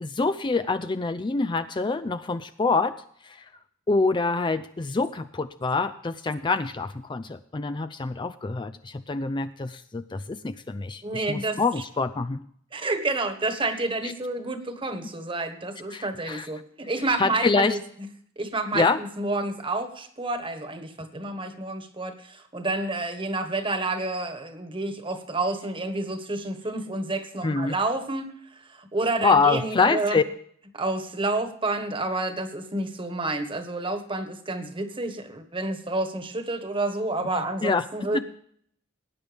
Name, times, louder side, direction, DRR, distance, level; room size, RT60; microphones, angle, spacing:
voice 1, 0.0-3.0 3.2-3.5 3.9-12.4 14.0-14.1 15.9-16.5 17.2-17.8 18.7-19.0 27.4-27.7 29.2-30.2 37.6-38.2, left 4 dB, 25° left, 10 dB, 0.4 m, -26 dB
voice 2, 11.0-11.6 12.7-17.8 18.4-28.3 28.7-30.2 30.7-38.2, right 2 dB, 25° right, 8 dB, 1.4 m, -29 dB
19.0 x 9.6 x 3.5 m, 0.63 s
head